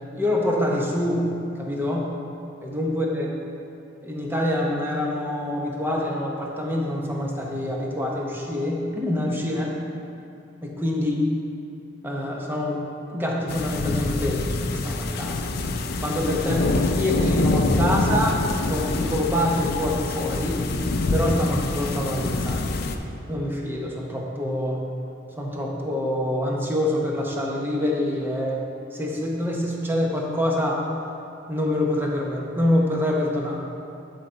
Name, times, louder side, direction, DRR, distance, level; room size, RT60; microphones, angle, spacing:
voice 1, 0.1-1.3 1.6-2.1 2.6-3.3 4.0-9.8 10.6-11.2 12.0-12.8 13.1-14.4 14.7-15.5 16.0-18.4 18.7-20.6 21.1-22.8 23.3-24.8 25.4-28.6 28.9-30.8 31.5-33.6, left 1 dB, 10° right, -1 dB, 0.8 m, -26 dB
sound 1, 13.5-23.0, left 2 dB, 55° left, 0.5 m, -25 dB
11.0 x 4.0 x 4.4 m, 2.6 s
head